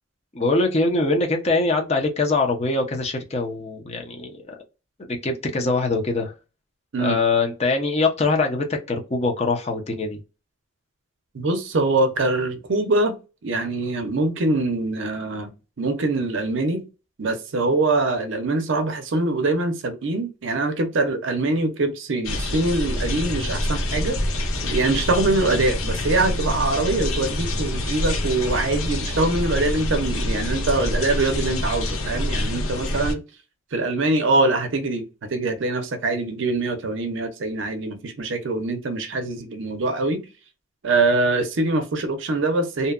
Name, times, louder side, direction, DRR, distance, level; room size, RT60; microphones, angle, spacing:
voice 1, 0.3-4.6 5.1-6.3 7.0-10.2, left 3 dB, 30° left, 0.5 m, -23 dB
voice 2, 11.3-13.2 13.4-15.5 15.8-16.9 17.2-33.2 33.7-40.2 40.8-42.9, right 2 dB, 65° right, 0.5 m, -23 dB
sound 1, 22.2-33.1, left 1 dB, 90° left, 0.6 m, -26 dB
2.7 x 2.2 x 2.3 m
head